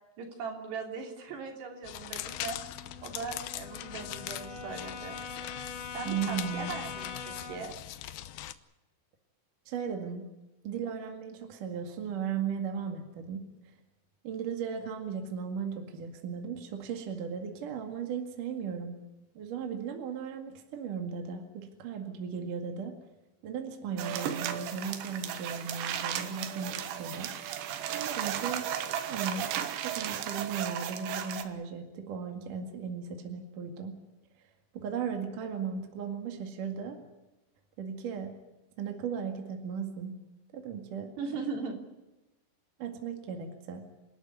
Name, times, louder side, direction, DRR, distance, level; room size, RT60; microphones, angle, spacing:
voice 1, 0.2-2.6 3.0-5.2 5.9-7.7 23.9-24.2 41.2-41.8, right 5 dB, 70° right, 3 dB, 5.2 m, -39 dB
sound 1, 1.8-8.5, left 13 dB, 75° left, 2.3 m, -41 dB
Brass instrument, 2.2-7.7, left 5 dB, 55° left, 3.5 m, -43 dB
voice 2, 6.0-6.7 9.7-10.2 10.6-13.4 14.2-19.0 19.3-22.9 23.4-27.3 27.9-28.7 29.1-29.5 29.8-33.9 34.7-37.0 37.8-38.4 38.8-40.1 40.5-41.1 42.8-43.8, right 6 dB, 55° right, 4 dB, 3.3 m, -36 dB
sound 2, 24.0-31.4, right 10 dB, 90° right, 3.6 m, -35 dB
28.0 x 13.5 x 9.7 m, 1.0 s
omnidirectional pair, 5.0 m